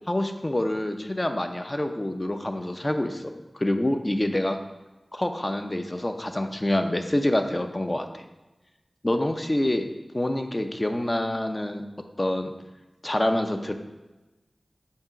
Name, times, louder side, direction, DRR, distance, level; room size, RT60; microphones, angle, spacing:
voice 1, 0.1-4.6 5.1-8.2 9.0-9.9 10.1-11.8 12.2-12.5 13.0-13.7, left 1 dB, 25° left, 6 dB, 0.6 m, -26 dB
7.3 x 2.9 x 5.7 m, 1.1 s
wide cardioid pair, 70°, 0 cm